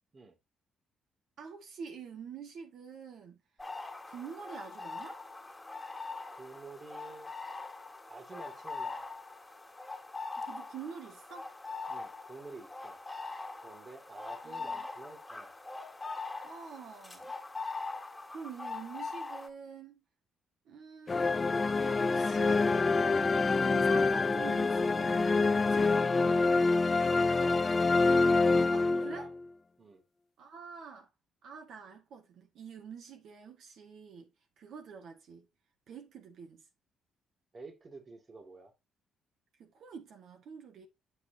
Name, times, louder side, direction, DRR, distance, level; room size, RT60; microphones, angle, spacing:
voice 1, 1.4-3.4 4.0-5.2 10.4-11.5 14.4-14.9 16.4-17.3 18.3-20.0 20.6-22.7 23.2-26.0 28.7-29.3 30.4-31.1 31.4-34.3 34.6-35.5 35.9-36.6 39.6-40.9, right 6 dB, 70° right, 1.8 m, -47 dB
sound 1, 3.6-19.5, left 3 dB, 10° left, 2.4 m, -42 dB
voice 2, 6.3-7.3 8.0-9.1 11.9-13.0 13.6-15.5 27.4-27.7 28.9-29.3 29.8-30.0 37.5-38.7, right 3 dB, 35° right, 2.2 m, -49 dB
sound 2, 21.1-29.4, left 3 dB, 30° left, 0.5 m, -26 dB
8.0 x 7.2 x 2.8 m
cardioid pair, 90°, 0 cm